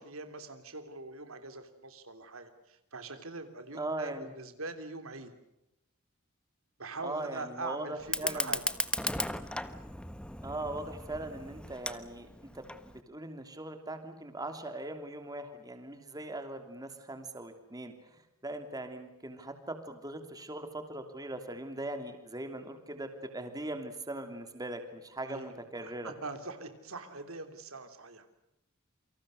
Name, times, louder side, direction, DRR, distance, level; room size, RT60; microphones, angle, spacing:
voice 1, 0.0-5.3 6.8-8.6 25.3-28.3, right 3 dB, 70° right, 8 dB, 3.1 m, -43 dB
voice 2, 3.7-4.3 7.0-8.5 10.4-12.3 12.5-12.6 13.1-26.1, right 2 dB, 15° right, 7 dB, 3.0 m, -40 dB
Fire, 8.0-13.0, left 1 dB, 5° left, 1.3 m, -36 dB
28.5 x 25.5 x 6.6 m, 0.87 s
head